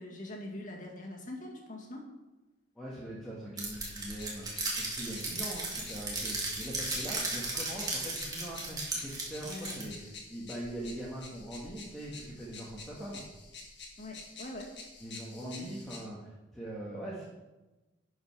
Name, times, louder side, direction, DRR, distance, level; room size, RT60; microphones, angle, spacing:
voice 1, 0.0-2.0 9.4-9.8 14.0-14.7 15.4-15.6, left 1 dB, 40° left, 0 dB, 1.8 m, -43 dB
voice 2, 2.7-13.2 15.0-17.2, right 1 dB, ahead, -7 dB, 1.5 m, -42 dB
sound 1, 3.6-16.0, left 3 dB, 60° left, 1.8 m, -49 dB
sound 2, 3.6-9.8, right 2 dB, 20° right, 1.9 m, -36 dB
10.5 x 5.2 x 5.8 m, 1.1 s
head